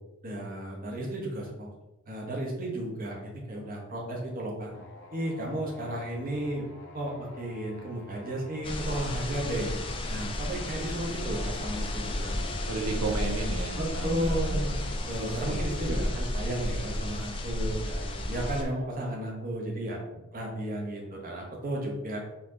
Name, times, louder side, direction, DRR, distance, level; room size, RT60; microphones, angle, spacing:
voice 1, 0.2-1.7 2.1-4.7 5.1-6.6 6.9-9.7 10.1-12.5 13.8-20.0 20.3-22.2, right 1 dB, 40° right, -1 dB, 1.1 m, -34 dB
sound 1, 4.7-8.8 9.5-9.6 10.8-16.1, left 3 dB, 60° left, 0.7 m, -48 dB
sound 2, 8.6-18.6, left 1 dB, 25° left, 0.5 m, -32 dB
voice 2, 12.7-14.6 15.2-16.1, right 3 dB, 80° right, 2 dB, 0.6 m, -34 dB
4.3 x 2.9 x 3.8 m, 0.97 s
head